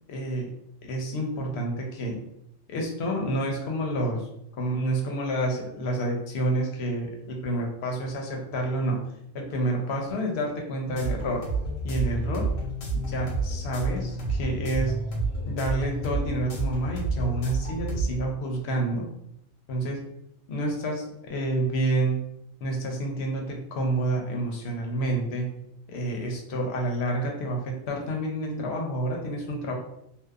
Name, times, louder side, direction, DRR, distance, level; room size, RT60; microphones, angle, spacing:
voice 1, 0.1-0.5 0.8-2.2 2.7-4.3 4.6-9.0 9.3-11.4 11.8-12.5 12.9-14.9 15.5-19.1 19.7-20.0 20.5-22.2 22.6-25.5 25.9-29.7, right 1 dB, 65° left, 1 dB, 0.8 m, -29 dB
sound 1, 10.9-18.1, right 3 dB, 90° left, 1.2 m, -30 dB
2.7 x 2.0 x 2.3 m, 0.80 s
omnidirectional pair, 1.4 m